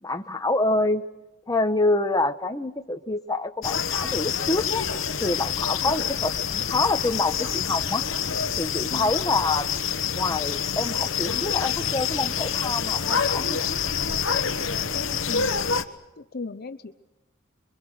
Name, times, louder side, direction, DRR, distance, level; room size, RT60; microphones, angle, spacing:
voice 1, 0.0-1.0 1.5-4.8 5.2-8.0 8.6-9.7 10.1-13.6, left 2 dB, 20° left, 7 dB, 1.2 m, -26 dB
sound 1, 3.6-15.8, left 7 dB, 70° left, 1.2 m, -27 dB
voice 2, 14.9-15.7 16.2-17.0, left 3 dB, 50° left, 9 dB, 0.8 m, -37 dB
27.0 x 23.5 x 6.5 m, 1.0 s
head